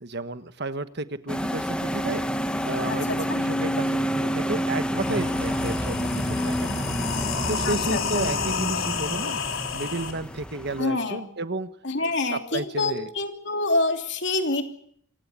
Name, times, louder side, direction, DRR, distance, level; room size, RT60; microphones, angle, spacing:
voice 1, 0.0-2.2 2.6-6.8 7.2-9.4 9.7-11.7 12.3-13.1, right 2 dB, 55° right, 11 dB, 1.3 m, -32 dB
sound 1, 1.3-10.8, equal, 5° left, 1.4 m, -29 dB
sound 2, 4.4-4.5 4.9-10.1, left 4 dB, 75° left, 3.9 m, -30 dB
voice 2, 7.6-8.2 10.8-11.3 11.8-14.6, left 2 dB, 60° left, 5 dB, 3.1 m, -26 dB
27.0 x 16.5 x 8.4 m, 0.68 s
head